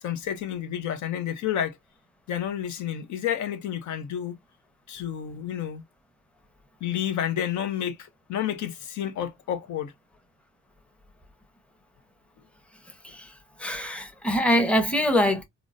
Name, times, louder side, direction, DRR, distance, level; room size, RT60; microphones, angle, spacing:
voice 1, 0.0-1.8 2.3-4.4 4.9-5.8 6.8-9.9, left 10 dB, 70° left, 0.6 m, -30 dB
voice 2, 13.6-15.4, equal, 5° left, 0.8 m, -23 dB
3.7 x 2.1 x 2.5 m
cardioid pair, 90°, 30 cm